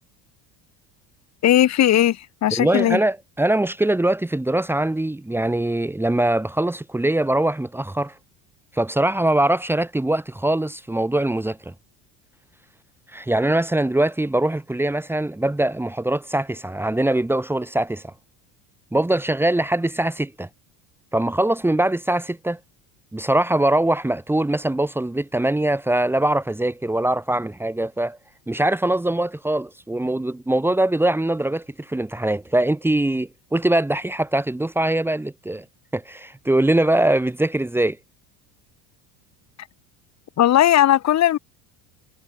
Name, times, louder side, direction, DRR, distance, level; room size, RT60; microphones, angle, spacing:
voice 1, 1.4-3.0 40.4-41.4, left 12 dB, 45° left, 5.7 m, -17 dB
voice 2, 2.5-8.1 8.7-11.7 13.1-18.1 18.9-20.5 21.1-22.6 23.1-28.2 28.5-35.6 35.9-38.0, right 1 dB, 5° right, 3.0 m, -22 dB
cardioid pair, 140°, 39 cm